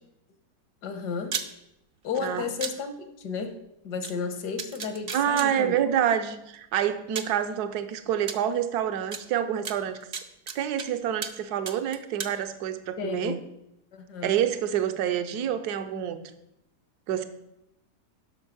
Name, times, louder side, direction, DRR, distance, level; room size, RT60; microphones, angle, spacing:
voice 1, 0.8-1.4 2.0-5.8 13.0-13.4 13.9-14.4, left 5 dB, 75° left, 1.6 m, -33 dB
sound 1, 1.2-1.5 2.6-2.7 4.0-4.1 4.6-5.5 6.5-6.6 7.2-7.4 8.3-8.4 9.1-9.2 9.7-10.9 11.2-11.4 11.7-12.3, right 6 dB, 50° right, 0.7 m, -33 dB
voice 2, 5.1-10.0 10.5-13.4 14.2-16.2 17.1-17.2, right 10 dB, 70° right, 1.3 m, -27 dB
12.0 x 5.3 x 5.9 m
omnidirectional pair, 1.8 m